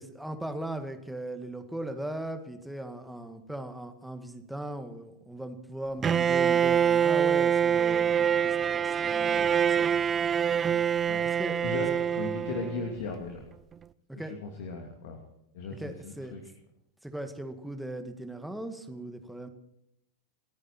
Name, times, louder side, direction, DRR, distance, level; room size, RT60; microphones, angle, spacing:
voice 1, 0.0-9.9 10.6-11.6 14.1-14.3 15.7-16.3 17.0-19.5, right 1 dB, 5° right, 6 dB, 2.1 m, -39 dB
Bowed string instrument, 6.0-13.0, right 8 dB, 25° right, 0.6 m, -25 dB
voice 2, 11.1-13.5 14.1-15.2 15.5-16.4, left 4 dB, 60° left, 2 dB, 2.7 m, -37 dB
29.5 x 9.8 x 4.4 m, 0.80 s
figure-of-eight pair, 95°, 0 cm